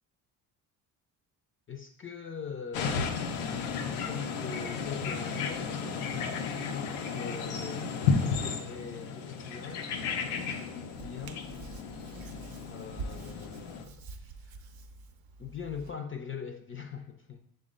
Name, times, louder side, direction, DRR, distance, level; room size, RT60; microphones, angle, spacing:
voice 1, 1.7-3.7 3.9-6.3 6.7-9.9 10.8-11.5 12.6-14.5 15.4-17.4, left 6 dB, 30° left, 5 dB, 0.5 m, -42 dB
sound 1, 2.7-13.8, left 5 dB, 90° left, 0.6 m, -33 dB
Hands, 10.9-15.9, right 3 dB, 50° right, 0.6 m, -46 dB
6.2 x 2.2 x 3.6 m, 0.69 s
hypercardioid pair, 55°, 45 cm